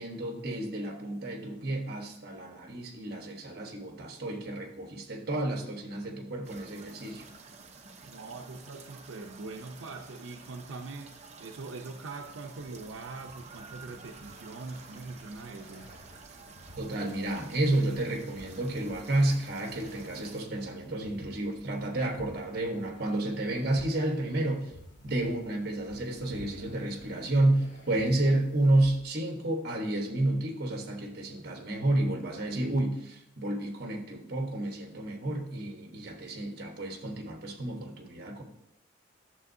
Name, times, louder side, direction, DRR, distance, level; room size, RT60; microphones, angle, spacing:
voice 1, 0.0-7.2 16.8-24.7 25.0-38.4, right 1 dB, 50° right, 3 dB, 1.2 m, -30 dB
sound 1, 6.4-20.4, right 4 dB, 35° right, 0.8 m, -51 dB
voice 2, 8.0-15.9, right 3 dB, 85° right, 3 dB, 0.6 m, -42 dB
sound 2, 12.6-29.0, equal, 60° left, 2.4 m, -54 dB
11.0 x 7.1 x 2.7 m, 0.81 s
head